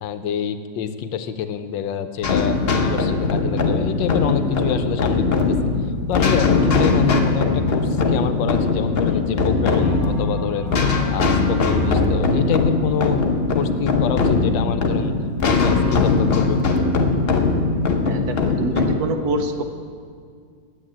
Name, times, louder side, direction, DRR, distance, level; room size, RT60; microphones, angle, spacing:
voice 1, 0.0-5.6 6.1-10.7 11.1-13.2 13.6-15.1 15.4-16.6, left 8 dB, 80° left, 10 dB, 1.3 m, -26 dB
sound 1, 2.2-18.9, left 3 dB, 45° left, 0.8 m, -20 dB
Bell, 9.7-14.3, left 2 dB, ahead, 2.9 m, -40 dB
voice 2, 18.0-19.6, right 2 dB, 65° right, 6 dB, 1.1 m, -26 dB
10.0 x 8.1 x 8.6 m, 2.1 s
omnidirectional pair, 2.1 m